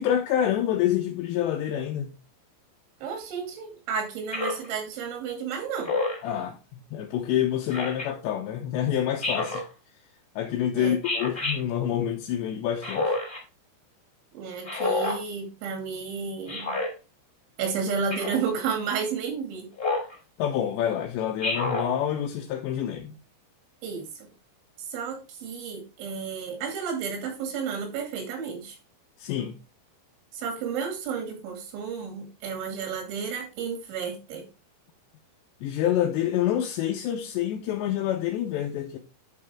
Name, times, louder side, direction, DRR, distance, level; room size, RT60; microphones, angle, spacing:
voice 1, 0.0-2.1 6.2-9.6 10.4-13.1 20.4-23.2 29.2-29.6 35.6-39.0, left 10 dB, 80° left, 2.9 m, -27 dB
voice 2, 3.0-5.9 10.7-11.0 14.3-16.8 17.6-19.7 23.8-24.3 24.8-28.8 30.3-34.5, right 6 dB, 85° right, 4.9 m, -32 dB
Speech synthesizer, 4.3-4.7 5.8-6.3 7.7-8.1 9.2-9.7 11.0-11.6 12.8-13.4 14.6-15.2 16.5-16.9 18.1-18.4 19.8-20.1 21.4-21.9, left 2 dB, 15° left, 2.3 m, -28 dB
11.0 x 5.4 x 3.6 m
omnidirectional pair, 5.3 m